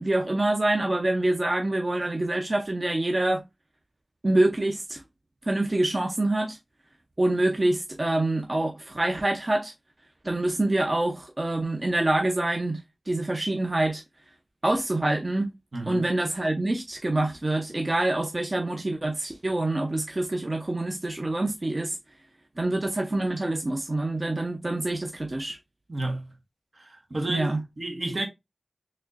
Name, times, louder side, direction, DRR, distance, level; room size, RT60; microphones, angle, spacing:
voice 1, 0.0-3.4 4.2-5.0 5.5-6.6 7.2-9.7 10.2-14.0 14.6-15.5 15.9-22.0 22.6-25.6 27.3-27.6, right 2 dB, 45° right, 0.6 m, -26 dB
voice 2, 25.9-26.2 27.1-27.5 27.8-28.3, right 2 dB, 70° right, 1.1 m, -30 dB
4.2 x 3.0 x 2.5 m
wide cardioid pair, 50°, 0 cm